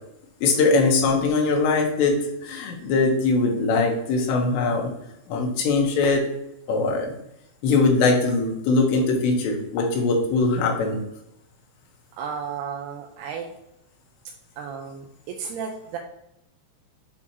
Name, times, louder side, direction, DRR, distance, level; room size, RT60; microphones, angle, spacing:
voice 1, 0.4-4.9 5.3-6.2 6.7-7.1 7.6-11.0, left 3 dB, 85° left, 1 dB, 3.4 m, -21 dB
voice 2, 12.2-13.5 14.6-16.0, right 6 dB, 80° right, 2 dB, 2.5 m, -33 dB
8.3 x 4.3 x 2.9 m, 0.80 s
omnidirectional pair, 5.0 m